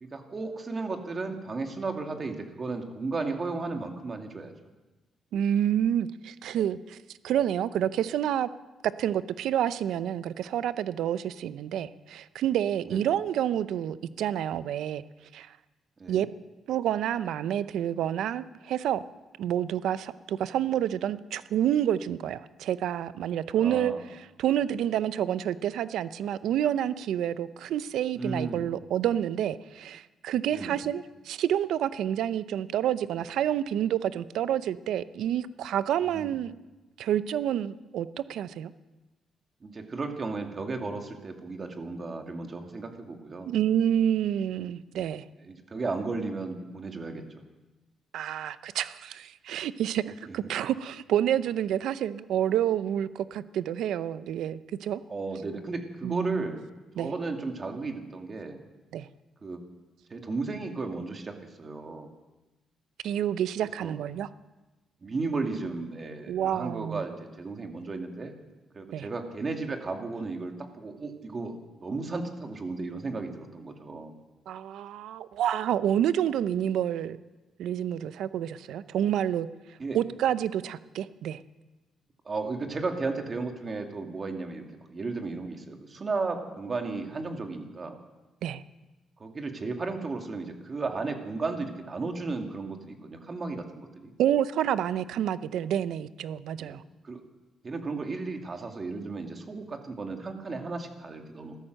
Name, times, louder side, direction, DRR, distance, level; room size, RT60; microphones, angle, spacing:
voice 1, 0.0-4.5 12.8-13.0 16.0-16.3 23.6-24.0 28.1-28.7 30.5-30.8 36.0-36.3 39.6-43.5 45.4-47.4 50.3-50.4 55.1-56.6 57.0-58.6 59.4-59.6 60.1-62.1 63.8-63.9 65.0-68.3 68.7-74.1 79.8-80.0 82.2-84.6 84.9-88.0 89.2-94.1 96.6-96.8 97.0-97.2 97.6-101.6, right 3 dB, 35° right, 4 dB, 2.3 m, -34 dB
voice 2, 5.3-7.0 7.2-8.5 9.0-15.0 15.3-15.5 16.1-16.3 16.7-19.0 19.4-36.5 37.0-38.7 43.5-45.3 48.1-55.0 56.0-56.5 57.0-57.1 58.9-59.1 63.0-64.3 66.3-67.0 68.9-69.1 74.5-77.2 77.6-79.5 79.9-81.4 88.4-88.6 94.2-96.8, right 10 dB, 80° right, 15 dB, 0.6 m, -28 dB
15.5 x 13.0 x 6.5 m, 1.1 s
cardioid pair, 90°, 0 cm